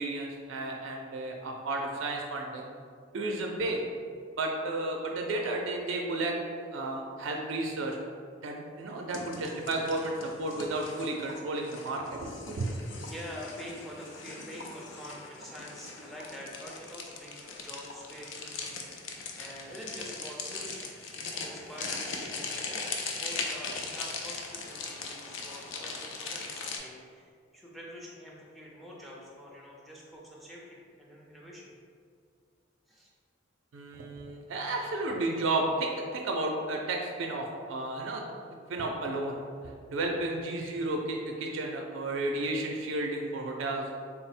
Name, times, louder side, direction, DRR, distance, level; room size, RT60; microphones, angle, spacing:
voice 1, 0.0-2.6 3.1-3.8 4.4-8.0 8.4-12.7 33.7-38.2 38.7-39.4 39.9-43.9, right 2 dB, 75° right, 1 dB, 0.4 m, -32 dB
voice 2, 0.8-1.1 3.6-3.7 12.7-19.1 19.3-31.7 32.9-33.1, equal, ahead, -4 dB, 0.5 m, -46 dB
sound 1, 9.1-26.8, left 4 dB, 70° left, 0.4 m, -40 dB
3.8 x 2.0 x 4.1 m, 2.2 s
head